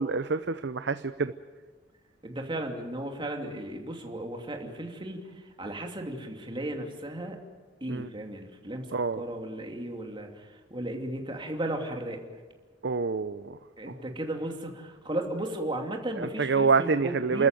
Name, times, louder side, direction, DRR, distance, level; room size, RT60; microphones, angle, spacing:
voice 1, 0.0-1.3 7.9-8.1 8.9-9.2 12.8-13.6 16.2-17.5, right 4 dB, 65° right, 11 dB, 0.7 m, -26 dB
voice 2, 2.2-7.4 7.8-12.2 13.8-17.5, right 1 dB, 25° right, 3 dB, 2.8 m, -35 dB
29.5 x 13.5 x 9.2 m, 1.4 s
head